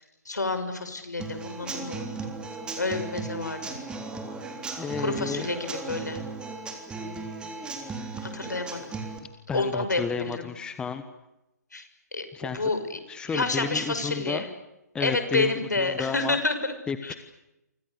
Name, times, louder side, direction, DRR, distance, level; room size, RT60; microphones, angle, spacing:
voice 1, 0.2-2.3 2.8-3.8 5.0-5.6 5.9-6.2 8.2-8.8 9.5-10.5 11.7-12.8 13.3-14.5 15.0-16.7 17.0-17.2, left 3 dB, 75° left, 8 dB, 6.2 m, -29 dB
Human voice / Acoustic guitar / Drum, 1.2-9.2, right 3 dB, 10° right, 3.5 m, -36 dB
voice 2, 4.8-5.5 9.5-11.0 12.3-12.7 13.1-14.4 14.9-16.4 16.9-17.1, left 6 dB, 10° left, 10 dB, 1.4 m, -32 dB
29.5 x 25.5 x 6.8 m, 0.91 s
figure-of-eight pair, 130°, 9 cm